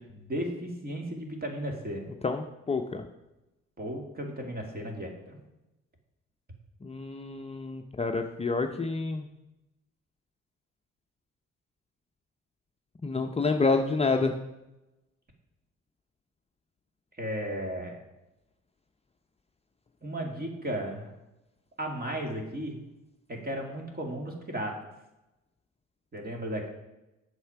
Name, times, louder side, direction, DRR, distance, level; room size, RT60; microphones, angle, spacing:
voice 1, 0.1-2.0 3.8-5.4 17.2-18.0 20.0-21.1 21.8-22.8 23.3-24.8 26.1-26.7, right 1 dB, 30° right, 2 dB, 2.3 m, -35 dB
voice 2, 2.2-3.0 6.8-9.3 13.0-14.3, left 3 dB, 20° left, 4 dB, 0.6 m, -28 dB
8.3 x 6.7 x 5.7 m, 0.97 s
cardioid pair, 90°, 30 cm